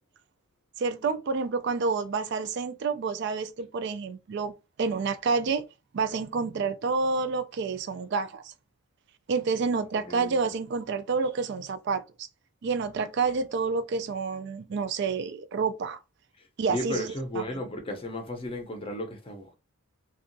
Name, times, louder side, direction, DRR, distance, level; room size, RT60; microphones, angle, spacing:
voice 1, 0.8-4.5 4.8-5.6 5.9-8.5 9.3-12.3 12.6-16.0 16.6-17.4, right 4 dB, 50° right, 0.3 m, -29 dB
voice 2, 10.1-10.4 16.4-19.5, left 1 dB, 25° left, 0.6 m, -34 dB
2.6 x 2.3 x 2.6 m
head